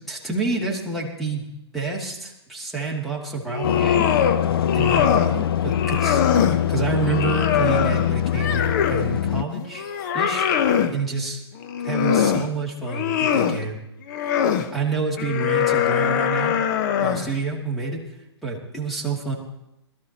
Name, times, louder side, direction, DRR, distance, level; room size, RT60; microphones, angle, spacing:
voice 1, 0.1-1.5 1.7-4.1 4.7-9.9 10.1-11.4 11.8-13.8 14.7-16.6 17.0-19.3, right 4 dB, ahead, -2 dB, 2.6 m, -28 dB
sound 1, 3.5-4.4 4.7-5.4 5.7-6.6 7.1-9.1 9.5-10.9 11.6-12.5 12.8-13.6 14.1-14.7 15.2-17.3, left 8 dB, 45° left, 1.0 m, -22 dB
sound 2, 3.6-9.4, left 10 dB, 60° left, 0.5 m, -23 dB
21.0 x 13.5 x 3.0 m, 0.88 s
figure-of-eight pair, 125°, 14 cm